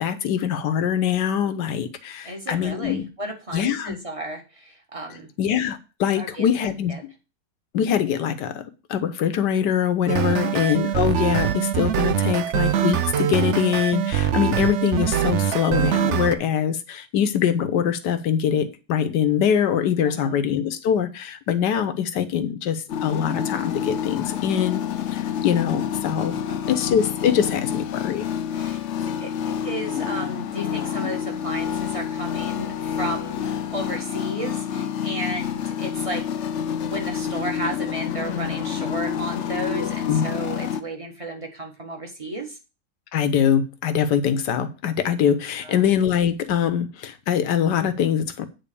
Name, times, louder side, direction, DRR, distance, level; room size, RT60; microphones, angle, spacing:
voice 1, 0.0-3.0 3.5-4.0 5.4-7.1 7.7-8.6 8.9-24.8 25.1-26.3 26.7-28.3 39.8-40.2 43.1-48.5, left 9 dB, 70° left, 1.4 m, -23 dB
voice 2, 2.2-5.3 6.1-6.5 6.9-7.0 10.3-10.5 20.0-20.4 26.5-26.8 28.5-29.3 29.6-36.3 36.8-42.6 45.6-45.9, right 1 dB, 20° right, 1.6 m, -33 dB
sound 1, 10.1-16.3, right 10 dB, 75° right, 0.6 m, -23 dB
sound 2, 22.9-40.8, left 8 dB, 90° left, 0.6 m, -28 dB
9.1 x 3.9 x 6.8 m
omnidirectional pair, 2.0 m